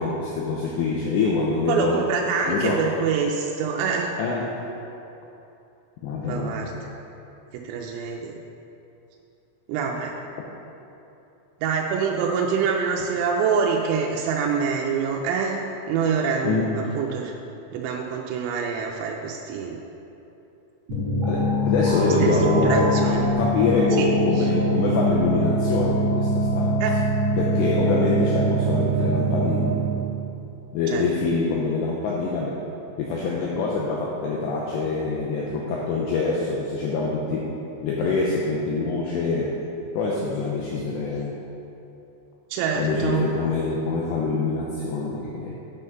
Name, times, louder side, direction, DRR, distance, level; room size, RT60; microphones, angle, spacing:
voice 1, 0.0-2.0 2.5-3.0 4.2-4.7 6.0-6.5 16.5-16.7 21.2-22.9 23.4-26.8 27.4-29.9 30.7-32.6 33.0-37.5 37.8-39.5 39.9-41.4 42.8-45.5, left 3 dB, 85° left, -3 dB, 2.5 m, -25 dB
voice 2, 1.7-4.2 6.3-6.7 7.5-8.3 9.7-10.1 11.6-17.3 17.7-19.8 22.0-23.3 24.0-24.1 24.4-24.5 26.8-26.9 30.9-31.1 42.5-43.3, right 6 dB, 90° right, 0 dB, 3.3 m, -25 dB
sound 1, 20.9-30.1, right 1 dB, 65° right, 1.5 m, -23 dB
9.1 x 5.7 x 5.3 m, 2.9 s
omnidirectional pair, 5.8 m